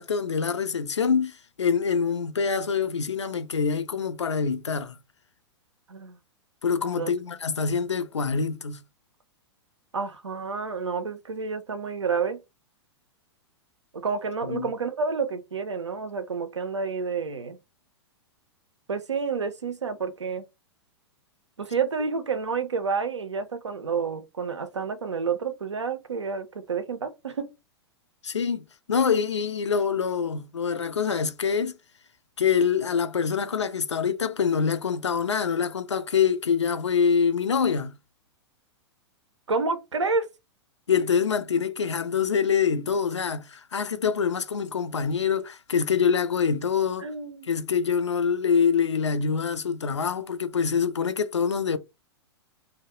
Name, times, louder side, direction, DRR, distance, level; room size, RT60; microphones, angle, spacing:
voice 1, 0.0-5.0 6.6-8.8 14.4-14.7 28.2-31.8 32.4-37.9 40.9-47.1 47.5-51.8, left 6 dB, 85° left, 0.4 m, -25 dB
voice 2, 9.9-12.4 13.9-17.6 18.9-20.4 21.6-27.5 39.5-40.3 47.0-47.5, right 5 dB, 85° right, 0.5 m, -29 dB
2.3 x 2.0 x 2.8 m
figure-of-eight pair, 105°, 15 cm